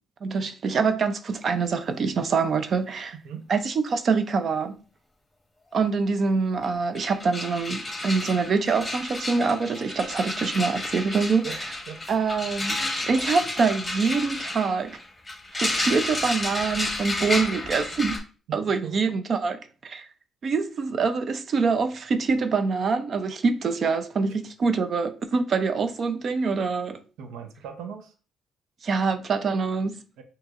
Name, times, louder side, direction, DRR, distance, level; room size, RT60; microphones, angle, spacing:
voice 1, 0.2-3.1 3.5-4.8 5.7-11.5 12.1-15.0 15.5-18.2 18.5-20.1 20.4-27.0 28.8-30.0, right 4 dB, 50° right, 0.5 m, -25 dB
sound 1, 6.6-6.7 6.9-18.2, left 2 dB, 15° left, 1.3 m, -31 dB
voice 2, 18.5-19.0 27.2-28.1 30.2-30.3, right 7 dB, 90° right, 0.7 m, -38 dB
6.1 x 2.9 x 2.5 m
cardioid pair, 90°, 0 cm